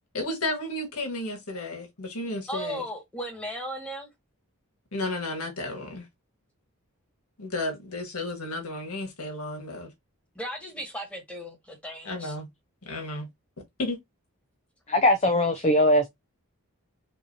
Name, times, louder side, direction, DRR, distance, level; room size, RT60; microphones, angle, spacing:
voice 1, 0.1-2.8 4.9-6.1 7.4-9.9 12.1-12.5 12.8-13.3 13.8-14.0, left 2 dB, 75° left, 1.7 m, -33 dB
voice 2, 2.5-4.1 10.4-12.4, equal, 5° left, 1.8 m, -36 dB
voice 3, 14.9-16.1, left 1 dB, 30° left, 0.5 m, -20 dB
6.0 x 2.8 x 2.8 m
head